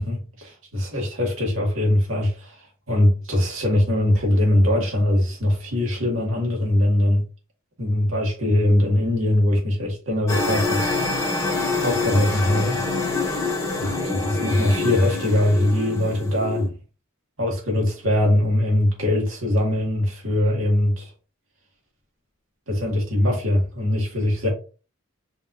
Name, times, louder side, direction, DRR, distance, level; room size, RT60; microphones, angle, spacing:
voice 1, 0.0-2.6 2.9-7.2 7.8-10.8 11.8-12.8 13.7-16.7 17.4-21.1 22.7-24.5, left 1 dB, 65° right, 2.1 m, -21 dB
sound 1, 10.3-16.7, left 3 dB, 15° left, 1.1 m, -26 dB
5.4 x 3.3 x 2.6 m
head